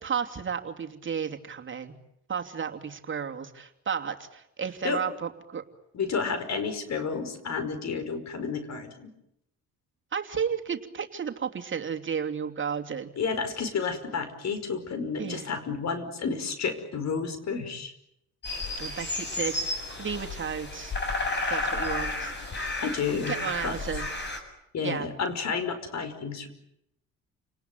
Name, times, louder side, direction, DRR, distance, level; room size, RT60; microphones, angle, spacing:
voice 1, 0.0-2.0 2.3-5.6 10.1-13.1 15.2-15.5 18.8-21.0 21.5-22.3 23.1-24.1 24.8-25.1, right 7 dB, 40° right, 4 dB, 2.9 m, -33 dB
voice 2, 5.9-9.1 13.2-17.9 22.5-23.3 23.6-23.8 24.7-26.5, left 5 dB, 60° left, 10 dB, 5.4 m, -31 dB
sound 1, 18.4-24.4, left 2 dB, 35° left, 7.8 m, -32 dB
30.0 x 19.5 x 9.3 m, 0.80 s
cardioid pair, 90°, 30 cm